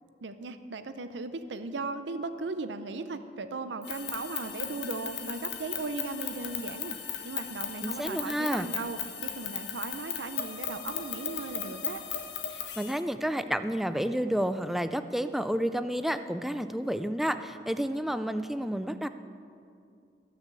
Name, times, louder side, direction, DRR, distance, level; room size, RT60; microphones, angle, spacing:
voice 1, 0.2-7.0 7.2-12.0, right 3 dB, 80° right, 10 dB, 0.6 m, -37 dB
sound 1, 3.8-13.0, left 9 dB, 70° left, 1.2 m, -37 dB
voice 2, 7.8-8.7 12.5-19.1, equal, ahead, 10 dB, 0.4 m, -30 dB
13.5 x 6.5 x 7.4 m, 2.4 s
head